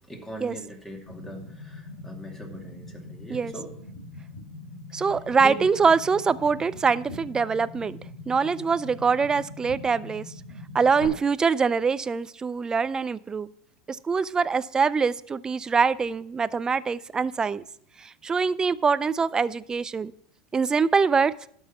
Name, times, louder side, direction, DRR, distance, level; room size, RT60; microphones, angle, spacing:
voice 1, 0.1-3.7 5.4-5.6, right 1 dB, 10° left, 2 dB, 2.5 m, -40 dB
sound 1, 1.1-11.1, left 2 dB, 90° left, 2.0 m, -42 dB
voice 2, 4.9-8.0 8.3-10.3 10.7-13.5 13.9-17.6 18.0-20.1 20.5-21.3, right 5 dB, 20° right, 16 dB, 0.4 m, -24 dB
12.5 x 5.5 x 5.9 m, 0.64 s
hypercardioid pair, 100°, 4 cm